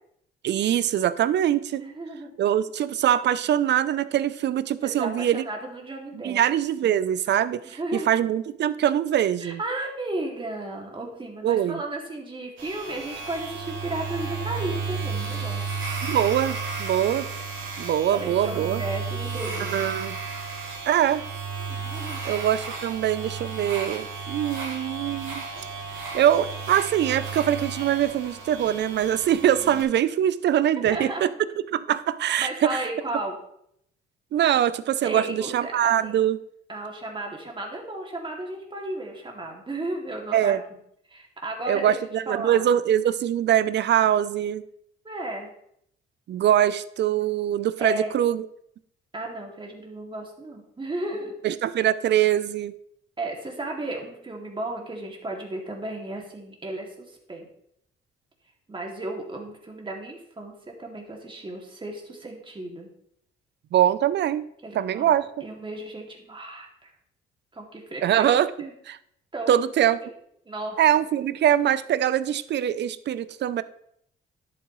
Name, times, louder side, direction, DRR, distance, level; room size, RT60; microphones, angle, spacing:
voice 1, 0.4-1.8 2.4-5.4 6.1-9.6 11.4-11.8 16.0-17.3 17.8-18.8 19.7-20.2 20.9-21.3 22.2-25.4 26.1-31.3 31.7-32.8 34.3-36.4 40.3-40.6 41.7-44.6 46.3-48.5 51.4-52.7 63.7-64.4 64.7-65.2 68.0-68.5 68.9-69.0 69.5-70.0 70.8-73.6, right 10 dB, 60° right, 16 dB, 0.5 m, -23 dB
voice 2, 1.8-2.3 4.8-6.4 7.6-8.1 9.4-15.7 18.1-19.9 21.7-22.2 30.8-31.3 32.4-33.4 35.0-36.2 36.7-40.6 41.1-42.0 42.3-42.7 45.0-45.5 47.8-48.1 49.1-51.4 53.2-57.5 58.7-62.9 64.6-66.9 67.5-68.7 69.3-69.5 70.0-70.1 70.5-70.8, right 2 dB, 25° right, 0 dB, 2.4 m, -34 dB
sound 1, 12.6-29.8, right 4 dB, 75° right, 2.6 m, -33 dB
10.5 x 8.6 x 3.1 m, 0.73 s
cardioid pair, 90°, 20 cm